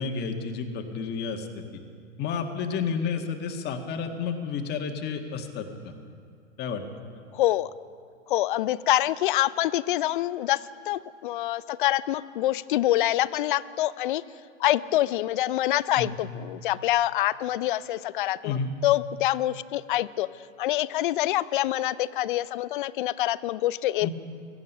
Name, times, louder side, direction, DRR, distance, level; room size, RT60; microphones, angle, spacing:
voice 1, 0.0-1.6 2.2-5.9 6.6-6.8 16.0-16.1 18.4-18.7 24.0-24.1, left 5 dB, 25° left, 4 dB, 1.6 m, -31 dB
voice 2, 7.3-7.7 8.3-14.2 14.6-20.3 20.6-24.1, left 14 dB, 40° left, 18 dB, 0.4 m, -26 dB
16.5 x 15.0 x 5.5 m, 2.3 s
hypercardioid pair, 120°, 39 cm